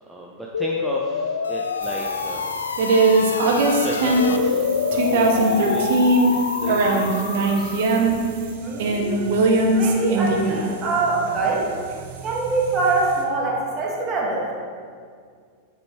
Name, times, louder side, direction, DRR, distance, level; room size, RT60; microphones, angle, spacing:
voice 1, 0.0-2.5 2.9-6.0 6.6-7.8, right 1 dB, 5° right, -3 dB, 0.7 m, -34 dB
sound 1, 0.5-8.0, left 5 dB, 70° left, 0.3 m, -26 dB
sound 2, 1.8-8.5 8.8-11.5 11.9-13.2, right 2 dB, 50° right, 0.9 m, -21 dB
voice 2, 8.6-11.7 12.2-14.5, right 3 dB, 30° right, -3 dB, 1.9 m, -24 dB
9.4 x 7.0 x 3.1 m, 2.1 s
figure-of-eight pair, 90°, 0 cm